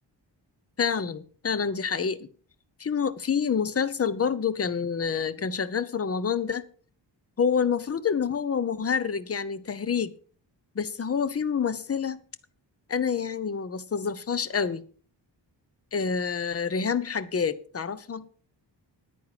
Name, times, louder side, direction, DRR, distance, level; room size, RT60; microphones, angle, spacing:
voice 1, 0.8-2.3 2.8-6.6 7.4-10.1 10.7-12.2 12.9-14.8 15.9-18.3, left 6 dB, 30° left, 0.8 m, -27 dB
9.9 x 9.6 x 5.0 m
wide cardioid pair, 115°, 45 cm